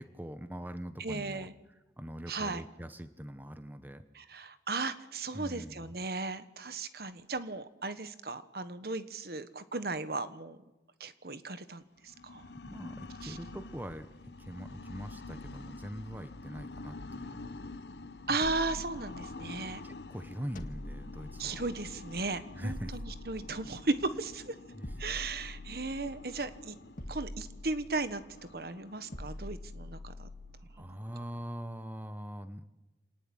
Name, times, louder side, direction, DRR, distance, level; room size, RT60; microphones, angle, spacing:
voice 1, 0.0-4.0 5.3-6.0 12.7-14.1 14.4-17.5 18.3-18.4 19.8-21.6 22.5-22.9 24.7-25.0 30.7-32.6, equal, 10° right, 10 dB, 1.0 m, -43 dB
voice 2, 1.0-1.5 2.3-2.6 4.1-10.6 11.0-11.8 12.2-12.4 13.2-13.4 18.3-19.8 21.4-24.5 25.0-26.8 27.1-28.2 28.5-30.3 30.8-31.0, right 3 dB, 60° right, 12 dB, 1.4 m, -36 dB
sound 1, 12.0-30.7, left 2 dB, 75° left, 0.9 m, -48 dB
sound 2, 18.4-19.7 20.6-22.2 22.7-24.1 24.8-26.4 27.0-28.4 29.1-30.7, left 1 dB, 50° left, 1.9 m, -45 dB
27.0 x 19.0 x 8.9 m, 1.0 s
head